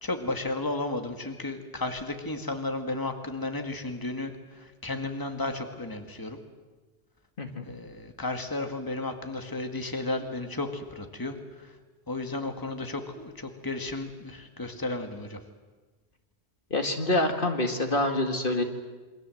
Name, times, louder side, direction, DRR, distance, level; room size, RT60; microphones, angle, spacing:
voice 1, 0.0-6.4 7.7-11.8 12.1-15.4, left 2 dB, 20° left, 5 dB, 1.9 m, -33 dB
voice 2, 16.7-18.6, left 1 dB, 55° left, 5 dB, 2.1 m, -26 dB
28.0 x 23.5 x 7.8 m, 1.3 s
omnidirectional pair, 1.1 m